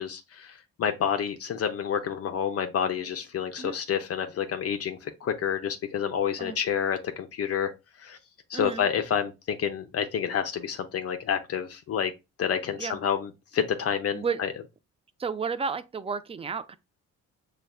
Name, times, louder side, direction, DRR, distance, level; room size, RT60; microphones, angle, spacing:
voice 1, 0.0-7.7 8.0-8.2 8.5-12.1 12.4-14.5, left 8 dB, 50° left, 0.5 m, -29 dB
voice 2, 8.5-8.9 12.8-13.0 14.1-14.5 15.2-16.8, right 5 dB, 20° right, 0.3 m, -32 dB
6.4 x 2.2 x 2.3 m
cardioid pair, 90°, 30 cm